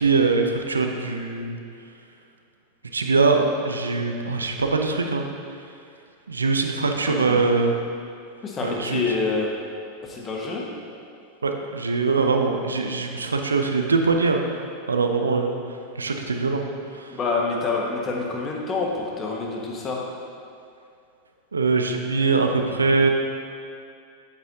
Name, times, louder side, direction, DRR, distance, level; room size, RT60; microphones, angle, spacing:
voice 1, 0.0-1.6 2.9-5.3 6.3-7.7 8.6-9.1 11.4-14.4 14.9-15.6 16.0-16.7 16.9-17.1 21.5-23.1, right 4 dB, 85° right, 4 dB, 0.5 m, -22 dB
voice 2, 7.1-7.4 8.4-9.5 10.0-10.6 17.1-20.0, left 4 dB, 30° left, -2 dB, 1.5 m, -27 dB
8.1 x 8.1 x 2.8 m, 2.4 s
hypercardioid pair, 90°, 0 cm